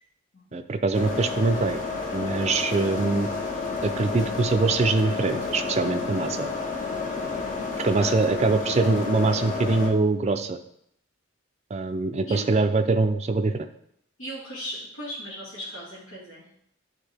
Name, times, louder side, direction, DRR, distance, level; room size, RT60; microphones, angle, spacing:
voice 1, 0.5-1.8 2.1-3.3 3.8-6.5 7.8-10.6 11.7-13.7, right 3 dB, 35° right, 8 dB, 0.4 m, -23 dB
sound 1, 0.9-9.9, left 4 dB, 40° left, 0.9 m, -30 dB
voice 2, 5.5-6.0 6.4-6.5 8.0-8.2 12.2-12.5 14.2-16.4, equal, 80° left, -6 dB, 2.0 m, -38 dB
9.2 x 3.7 x 3.4 m, 0.73 s
head